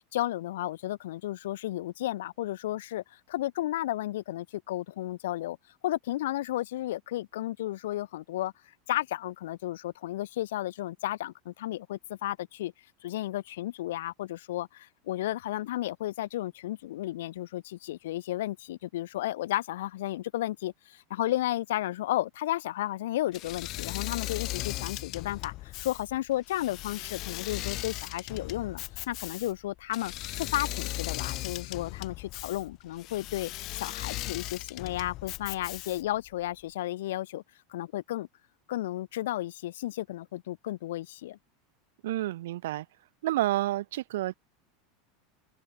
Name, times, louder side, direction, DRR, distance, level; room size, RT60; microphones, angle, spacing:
voice 1, 0.1-3.0 3.3-5.6 5.8-8.5 8.9-12.7 13.0-30.1 30.4-37.4 37.7-38.3 38.7-41.4, left 15 dB, 85° left, 0.7 m, -33 dB
Engine / Mechanisms, 23.3-36.2, left 18 dB, 50° left, 3.1 m, -38 dB
voice 2, 42.0-42.8 43.2-44.3, right 15 dB, 80° right, 1.1 m, -29 dB
supercardioid pair, 130°, 0 cm